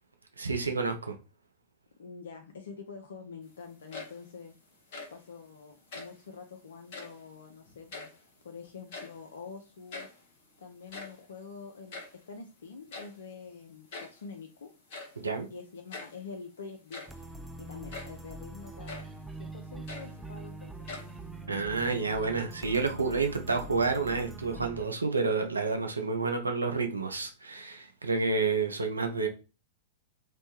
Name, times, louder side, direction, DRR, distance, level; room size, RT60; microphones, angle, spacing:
voice 1, 0.4-1.1 15.2-15.5 21.5-29.3, right 4 dB, 80° right, 0.5 m, -29 dB
voice 2, 2.0-4.5 5.1-8.1 8.4-10.1 10.6-12.0 12.3-14.7 15.5-17.1 17.6-19.1 19.4-20.7, left 5 dB, 65° left, 0.4 m, -46 dB
sound 1, 3.7-4.4 4.7-5.3 5.8-6.3 6.8-7.3 7.6-8.5 8.7-9.4 9.6-9.7 9.9-10.3 10.7-12.3 12.9-13.3 13.9-14.3 14.9-15.2 15.9-16.2 16.7-17.3 17.9-18.2 18.9-19.2 19.6-20.5 20.9-21.5, left 3 dB, 45° left, 0.9 m, -44 dB
sound 2, 17.1-24.9, right 2 dB, 5° right, 0.3 m, -44 dB
3.1 x 2.1 x 2.9 m
figure-of-eight pair, 100°, 0 cm